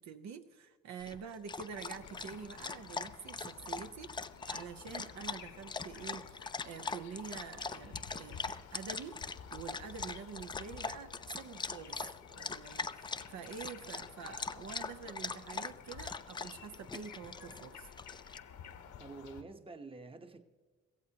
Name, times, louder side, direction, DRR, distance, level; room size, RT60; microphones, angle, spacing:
voice 1, 0.0-9.2 9.5-12.0 12.3-17.9, right 6 dB, 65° right, 0.9 m, -47 dB
Dog, 1.0-18.4, left 4 dB, 15° left, 0.4 m, -42 dB
sound 1, 1.7-19.4, left 7 dB, 75° left, 1.4 m, -53 dB
voice 2, 19.0-20.4, right 3 dB, 20° right, 1.0 m, -48 dB
23.0 x 15.5 x 2.9 m
cardioid pair, 90°, 30 cm